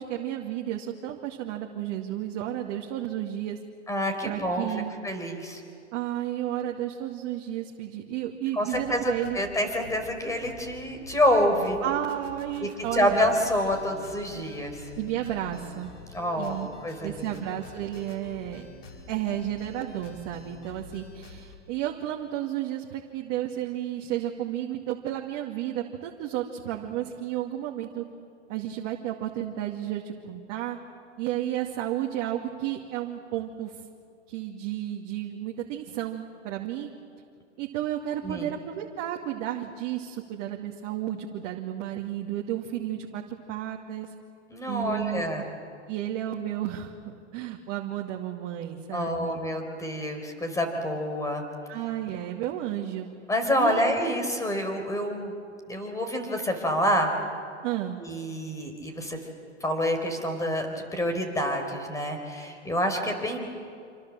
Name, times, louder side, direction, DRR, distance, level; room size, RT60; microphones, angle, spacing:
voice 1, 0.0-3.6 4.2-4.9 5.9-9.4 11.8-13.2 15.0-15.9 16.4-16.7 17.0-18.7 19.1-28.0 28.5-30.8 31.2-33.8 34.3-36.9 37.6-44.1 44.7-45.2 45.9-46.9 47.3-49.4 51.7-53.1 53.6-53.8 57.6-58.0, right 12 dB, 45° right, 0 dB, 2.3 m, -32 dB
voice 2, 3.9-4.7 5.0-5.6 8.5-11.8 12.6-14.8 16.1-16.6 16.8-17.3 38.2-38.5 44.5-45.5 48.9-51.4 53.3-55.3 55.7-57.1 58.0-59.2 59.6-63.4, equal, 10° left, 5 dB, 4.4 m, -27 dB
sound 1, 8.7-21.6, left 3 dB, 85° left, 5.0 m, -46 dB
27.0 x 26.0 x 7.6 m, 2.3 s
hypercardioid pair, 125°, 36 cm